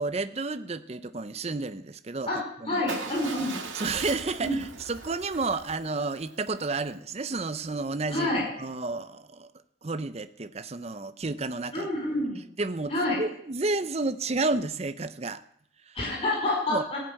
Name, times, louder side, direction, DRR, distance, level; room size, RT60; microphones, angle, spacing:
voice 1, 0.0-2.3 2.6-3.1 3.7-8.3 8.6-9.5 9.8-11.9 12.6-12.9 13.2-15.4 15.9-16.0 16.7-16.8, right 3 dB, 35° right, 12 dB, 0.6 m, -31 dB
voice 2, 2.7-3.6 4.4-4.6 8.1-8.4 11.7-12.4 12.9-13.2 15.9-17.0, left 1 dB, 30° left, -2 dB, 5.1 m, -28 dB
Motorcycle / Engine starting / Idling, 2.9-7.0, right 5 dB, 80° right, 1.8 m, -40 dB
15.5 x 6.7 x 8.9 m, 0.67 s
head